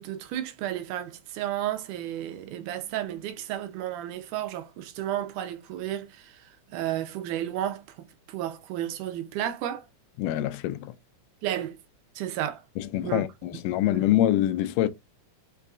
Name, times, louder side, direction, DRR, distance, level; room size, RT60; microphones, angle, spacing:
voice 1, 0.0-6.4 6.7-9.8 11.4-11.8 12.2-12.6 13.0-13.2 13.5-14.0, right 12 dB, 90° right, 2.1 m, -33 dB
voice 2, 10.2-10.9 12.8-14.9, left 13 dB, 90° left, 2.1 m, -25 dB
5.5 x 2.4 x 2.5 m
omnidirectional pair, 3.6 m